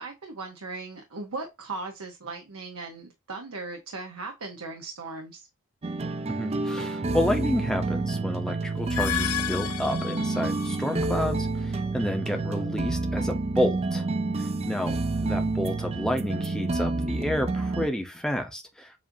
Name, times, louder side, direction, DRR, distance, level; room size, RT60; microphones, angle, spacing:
voice 1, 0.0-5.5 12.3-12.8, right 3 dB, 80° right, 1.0 m, -38 dB
Joy Safari, 5.8-17.9, right 3 dB, 30° right, 0.4 m, -29 dB
voice 2, 6.3-14.0 14.4-15.0 15.2-18.9, left 1 dB, 5° left, 0.7 m, -30 dB
sound 1, 8.7-11.0, left 12 dB, 85° left, 0.4 m, -32 dB
7.4 x 2.6 x 2.7 m
head